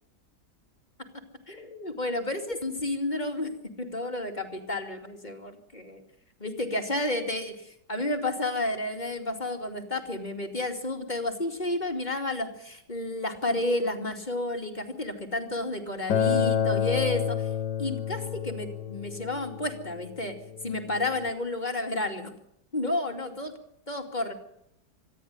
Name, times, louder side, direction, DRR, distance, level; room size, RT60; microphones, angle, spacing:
voice 1, 1.5-3.5 3.8-6.0 6.4-17.5 17.8-20.4 20.6-22.3 22.7-23.5 23.9-24.3, left 2 dB, 25° left, 3 dB, 2.7 m, -31 dB
Acoustic guitar, 16.1-21.3, left 8 dB, 75° left, 1.6 m, -29 dB
25.5 x 11.0 x 9.5 m, 0.75 s
omnidirectional pair, 1.9 m